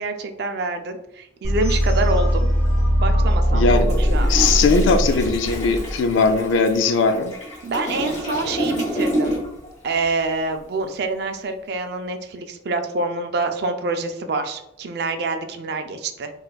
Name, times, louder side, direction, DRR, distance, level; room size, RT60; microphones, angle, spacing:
voice 1, 0.0-2.5 3.0-4.3 7.6-9.4 9.8-16.3, right 3 dB, 55° right, 6 dB, 0.4 m, -26 dB
sound 1, 1.4-6.3, equal, 5° left, 1.0 m, -20 dB
voice 2, 3.5-3.9 4.3-7.3, left 4 dB, 75° left, 7 dB, 0.3 m, -19 dB
Toilet flush, 3.7-9.7 9.9-10.2, equal, 35° left, 1.1 m, -29 dB
4.1 x 2.4 x 2.2 m, 0.83 s
head